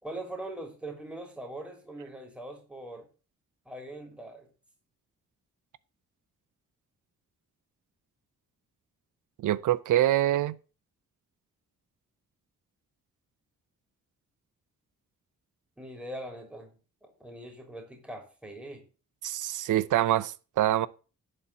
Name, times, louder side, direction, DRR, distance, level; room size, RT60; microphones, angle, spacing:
voice 1, 0.0-3.1 3.6-4.5 15.8-18.8, right 1 dB, 5° right, 3.3 m, -42 dB
voice 2, 9.4-10.5 19.2-20.9, right 13 dB, 85° right, 0.6 m, -25 dB
11.0 x 4.4 x 7.6 m
cardioid pair, 85°, 30 cm